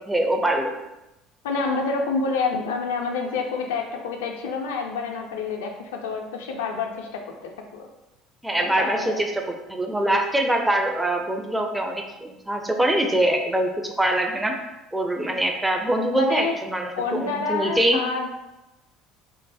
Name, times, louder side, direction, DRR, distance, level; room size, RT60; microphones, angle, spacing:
voice 1, 0.1-0.7 8.4-14.6 14.9-18.0, right 1 dB, 10° right, 3 dB, 0.4 m, -23 dB
voice 2, 1.4-7.9 8.6-9.2 16.1-16.5 17.0-18.3, left 4 dB, 70° left, 2 dB, 0.4 m, -28 dB
3.0 x 2.1 x 2.6 m, 0.95 s
figure-of-eight pair, 60°, 0 cm